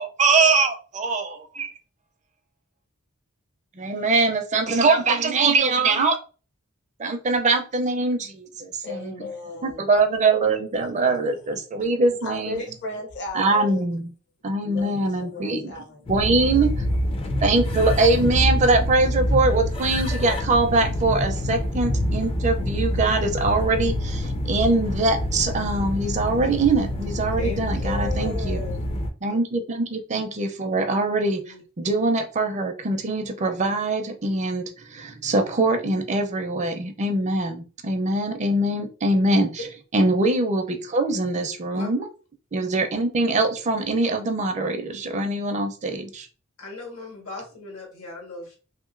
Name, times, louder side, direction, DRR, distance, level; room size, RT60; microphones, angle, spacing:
voice 1, 0.0-1.7 3.8-6.2 7.0-9.1 9.6-12.6 13.3-14.1 14.4-15.7 16.1-16.8 17.4-28.6 29.2-31.4 31.8-39.6 39.9-42.1 42.5-46.3, right 3 dB, 35° right, 0.4 m, -23 dB
voice 2, 8.8-9.9 11.2-11.9 12.2-13.8 14.6-16.6 27.8-28.8, left 3 dB, 55° left, 0.7 m, -36 dB
sound 1, 16.1-29.1, left 1 dB, 25° left, 0.4 m, -26 dB
voice 3, 27.4-27.7 29.3-29.4 31.4-31.6 41.7-41.9 46.6-48.6, left 2 dB, 85° left, 1.5 m, -38 dB
2.9 x 2.8 x 2.5 m
head